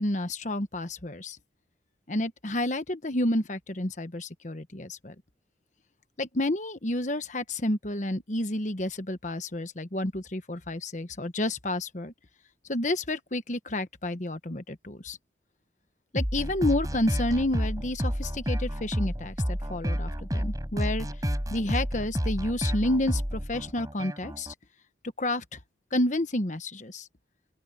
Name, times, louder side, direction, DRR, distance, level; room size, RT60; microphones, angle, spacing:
voice 1, 0.0-1.4 2.1-5.1 6.2-12.1 12.7-15.2 16.1-21.1 21.5-24.5 25.2-25.6 25.9-27.1, left 1 dB, 40° left, 1.2 m, -30 dB
sound 1, 16.2-24.5, equal, 20° right, 7.0 m, -30 dB
open air
head